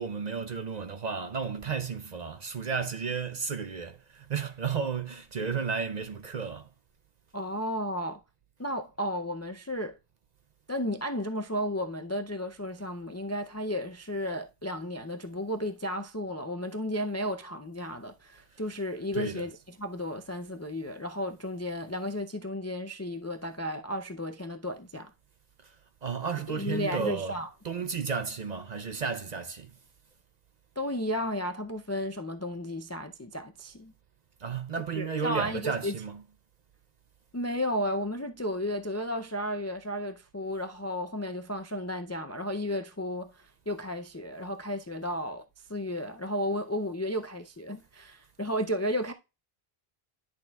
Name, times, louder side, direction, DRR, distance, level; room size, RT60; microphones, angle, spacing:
voice 1, 0.0-6.7 18.5-18.6 19.1-19.5 25.6-25.7 26.0-27.3 27.6-29.7 34.4-36.2, right 6 dB, 50° right, 0.6 m, -33 dB
voice 2, 7.3-8.2 8.6-10.0 10.7-25.1 26.5-27.5 30.8-33.9 35.0-35.9 37.3-45.4 45.7-49.1, left 1 dB, 25° left, 0.3 m, -33 dB
10.5 x 6.5 x 2.3 m
omnidirectional pair, 1.1 m